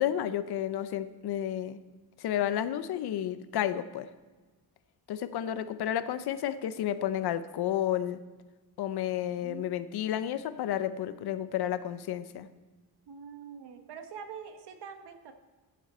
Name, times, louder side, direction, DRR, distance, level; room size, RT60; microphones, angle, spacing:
voice 1, 0.0-1.8 2.2-4.1 5.1-8.2 8.8-12.5, left 11 dB, 70° left, 13 dB, 0.7 m, -31 dB
voice 2, 9.4-9.7 13.1-15.3, right 6 dB, 85° right, 7 dB, 1.3 m, -44 dB
14.5 x 7.5 x 4.3 m, 1.3 s
wide cardioid pair, 170°, 40 cm